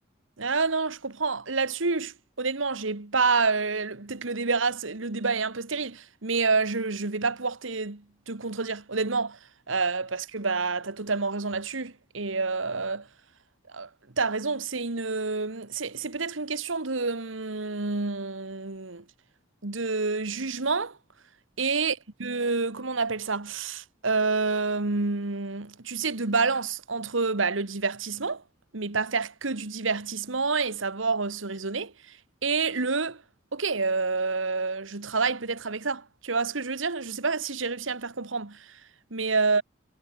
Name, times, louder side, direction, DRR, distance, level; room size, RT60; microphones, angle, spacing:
voice 1, 0.4-9.4 9.7-13.1 13.7-13.9 14.2-19.0 19.6-21.0 21.6-28.4 28.7-32.2 32.4-33.2 33.5-38.8 39.1-39.6, right 4 dB, 90° right, 1.7 m, -28 dB
head